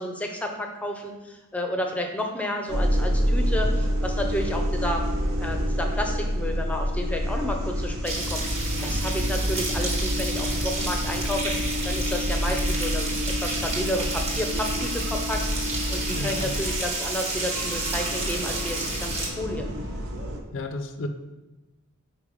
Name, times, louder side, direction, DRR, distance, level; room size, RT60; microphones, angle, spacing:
voice 1, 0.0-5.0 5.4-8.4 8.8-11.5 11.8-19.7, left 1 dB, 5° left, 3 dB, 0.6 m, -31 dB
sound 1, 2.7-20.4, equal, 65° right, 0.8 m, -28 dB
sound 2, 8.0-19.3, right 2 dB, 30° right, 1.2 m, -31 dB
sound 3, 14.6-20.1, left 1 dB, 50° right, 1.4 m, -44 dB
voice 2, 16.2-16.5 20.5-21.1, left 2 dB, 55° left, 8 dB, 0.4 m, -32 dB
5.1 x 4.4 x 4.9 m, 1.1 s
head